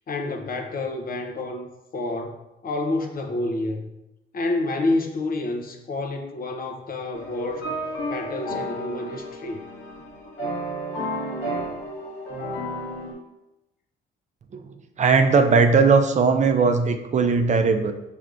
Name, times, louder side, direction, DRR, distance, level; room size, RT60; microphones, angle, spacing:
voice 1, 0.1-1.7 1.9-2.4 2.6-3.9 4.3-7.6 8.1-9.6, left 2 dB, 45° left, 5 dB, 0.7 m, -28 dB
sound 1, 7.1-13.1, equal, 75° left, 1.6 m, -32 dB
voice 2, 15.0-17.9, right 4 dB, 35° right, 6 dB, 0.5 m, -18 dB
6.2 x 3.3 x 2.4 m, 0.92 s
cardioid pair, 90°, 20 cm